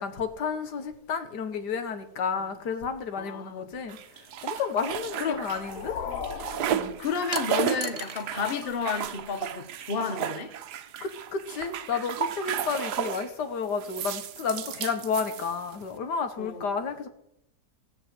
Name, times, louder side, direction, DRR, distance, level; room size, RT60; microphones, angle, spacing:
voice 1, 0.0-4.0 4.4-6.0 6.7-6.9 11.0-17.1, left 5 dB, 85° left, 1.8 m, -31 dB
voice 2, 3.2-3.7 5.2-5.5 6.6-10.5 16.4-16.7, left 6 dB, 40° left, 1.0 m, -32 dB
sound 1, 3.9-5.9 6.1-13.3 13.8-15.8, right 10 dB, 80° right, 1.3 m, -33 dB
sound 2, 5.1-7.8, left 6 dB, 60° left, 1.2 m, -38 dB
sound 3, 7.3-8.3 8.6-9.5, right 4 dB, 35° right, 0.6 m, -38 dB
16.5 x 7.6 x 7.6 m
omnidirectional pair, 1.7 m